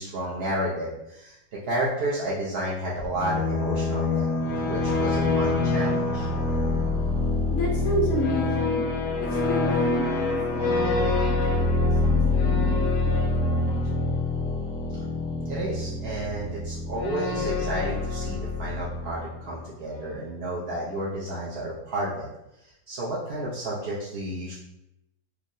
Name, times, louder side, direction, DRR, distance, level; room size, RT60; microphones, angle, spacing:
voice 1, 0.0-1.4 1.7-4.3 4.6-6.3 15.5-22.3 22.9-24.6, right 1 dB, 70° right, -6 dB, 0.5 m, -31 dB
sound 1, 3.0-19.6, left 3 dB, 90° left, 1.2 m, -25 dB
voice 2, 7.5-8.9 9.2-14.0, left 1 dB, 70° left, -2 dB, 0.7 m, -32 dB
4.4 x 2.0 x 2.5 m, 0.87 s
omnidirectional pair, 1.7 m